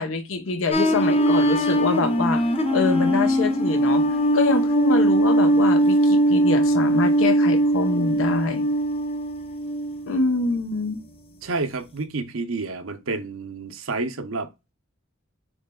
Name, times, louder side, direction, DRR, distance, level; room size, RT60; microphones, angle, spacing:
voice 1, 0.0-2.4 2.7-4.0 4.3-8.7 10.1-11.0, left 3 dB, 80° left, 0.9 m, -25 dB
sound 1, 0.7-10.1 10.6-11.0, right 1 dB, 30° left, 0.7 m, -20 dB
voice 2, 11.4-14.5, right 3 dB, 80° right, 0.7 m, -29 dB
7.1 x 3.2 x 2.3 m
head